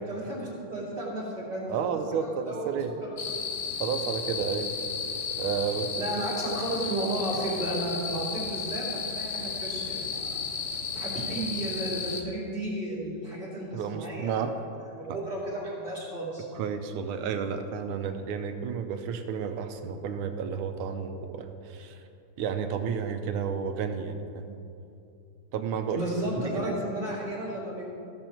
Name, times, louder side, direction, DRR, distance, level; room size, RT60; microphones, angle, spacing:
voice 1, 0.0-2.8 3.1-3.2 5.9-10.4 10.9-14.4 14.9-16.5 25.9-27.9, right 1 dB, 25° right, -7 dB, 2.8 m, -33 dB
voice 2, 1.7-2.9 3.8-4.7 5.4-5.9 13.7-14.5 15.1-15.2 16.5-22.0 22.4-24.6 25.5-26.1 26.5-26.8, right 6 dB, 80° right, 7 dB, 1.5 m, -31 dB
sound 1, 3.2-12.2, left 5 dB, 75° left, 0.6 m, -33 dB
15.5 x 7.0 x 4.4 m, 2.7 s
omnidirectional pair, 2.3 m